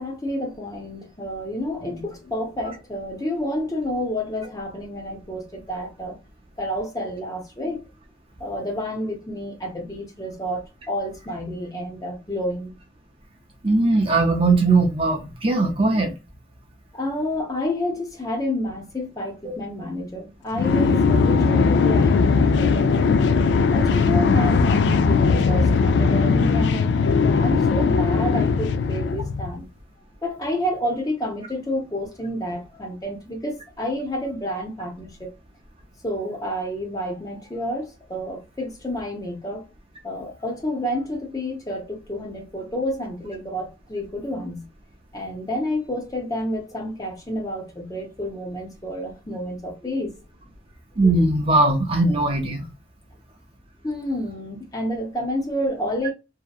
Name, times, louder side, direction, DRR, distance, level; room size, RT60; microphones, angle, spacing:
voice 1, 0.0-6.2 6.6-7.8 8.4-12.7 16.9-23.2 23.7-29.7 30.2-35.3 36.0-39.7 40.0-44.7 45.1-50.2 53.8-56.1, left 1 dB, 20° left, 0.7 m, -29 dB
voice 2, 13.6-16.1 19.4-19.5 51.0-52.7, right 2 dB, 30° right, 0.6 m, -19 dB
sound 1, 20.5-29.5, left 5 dB, 80° left, 0.3 m, -19 dB
2.8 x 2.2 x 2.2 m
head